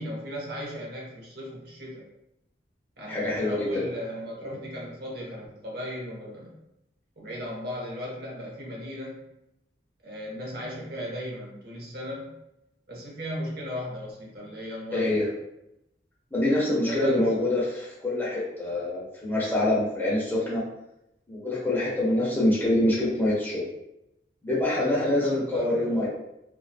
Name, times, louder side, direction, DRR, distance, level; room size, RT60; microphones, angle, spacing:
voice 1, 0.0-2.0 3.0-6.6 7.2-9.2 10.0-12.3 12.9-15.2 16.8-17.5 24.8-26.1, equal, 60° right, -3 dB, 0.8 m, -36 dB
voice 2, 3.1-3.8 4.4-4.5 14.9-15.2 16.3-20.6 21.3-23.7 24.4-26.1, left 1 dB, 10° left, -7 dB, 0.7 m, -25 dB
2.7 x 2.3 x 2.3 m, 0.85 s
head